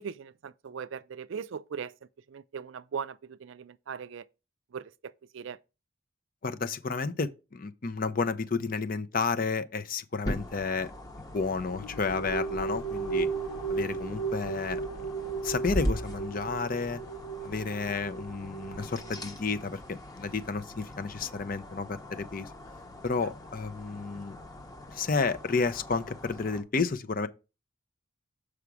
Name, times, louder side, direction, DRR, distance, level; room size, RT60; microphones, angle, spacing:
voice 1, 0.0-1.9 2.3-4.3 4.7-5.6 23.2-23.3, right 6 dB, 65° right, 0.4 m, -39 dB
voice 2, 6.4-10.9 11.3-13.3 13.7-15.1 15.4-17.0 17.4-22.5 23.0-24.4 24.9-27.3, left 4 dB, 40° left, 0.6 m, -31 dB
sound 1, 10.2-26.6, equal, 15° left, 0.9 m, -41 dB
sound 2, 11.8-19.3, right 4 dB, 90° left, 0.9 m, -35 dB
7.0 x 4.9 x 4.8 m
head